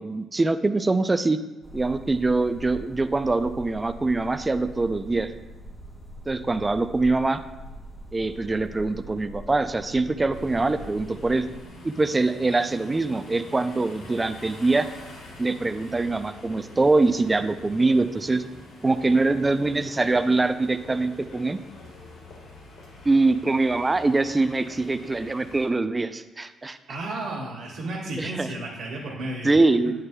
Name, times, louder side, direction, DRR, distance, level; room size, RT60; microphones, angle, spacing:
voice 1, 0.0-1.4 1.7-5.3 6.3-7.4 8.1-11.4 11.8-14.9 15.4-18.4 18.8-21.6 23.0-26.8 28.2-28.5 29.4-29.9, right 3 dB, 20° right, 11 dB, 0.4 m, -23 dB
sound 1, 1.6-11.7, right 1 dB, 10° left, 1.5 m, -43 dB
sound 2, 10.3-25.7, left 2 dB, 75° left, 1.6 m, -46 dB
voice 2, 26.9-29.5, right 2 dB, 85° right, -10 dB, 1.5 m, -33 dB
8.8 x 6.7 x 2.2 m, 1.1 s
cardioid pair, 90°, 0 cm